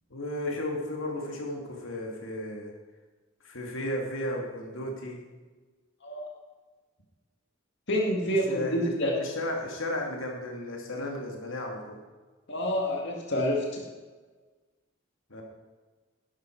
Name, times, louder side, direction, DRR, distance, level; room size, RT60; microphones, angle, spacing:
voice 1, 0.1-2.7 3.4-5.2 8.5-12.0 15.3-15.4, left 1 dB, 90° left, 0 dB, 2.5 m, -34 dB
voice 2, 7.9-9.1 12.5-13.8, equal, 60° left, -1 dB, 2.1 m, -28 dB
11.5 x 11.5 x 4.7 m, 1.3 s
head